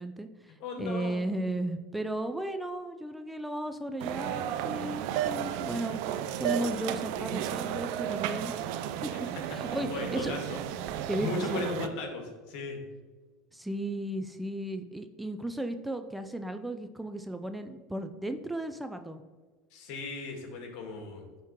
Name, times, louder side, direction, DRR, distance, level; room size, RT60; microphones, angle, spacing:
voice 1, 0.0-6.0 6.4-8.8 9.0-10.3 11.1-11.6 13.5-19.2, right 1 dB, 5° right, 7 dB, 0.4 m, -35 dB
voice 2, 0.6-1.2 9.7-10.6 11.2-12.8 19.7-21.2, left 3 dB, 60° left, 3 dB, 1.6 m, -36 dB
sound 1, 4.0-11.9, right 10 dB, 65° right, 0.4 m, -33 dB
10.5 x 3.6 x 2.9 m, 1.4 s
hypercardioid pair, 85°, 0 cm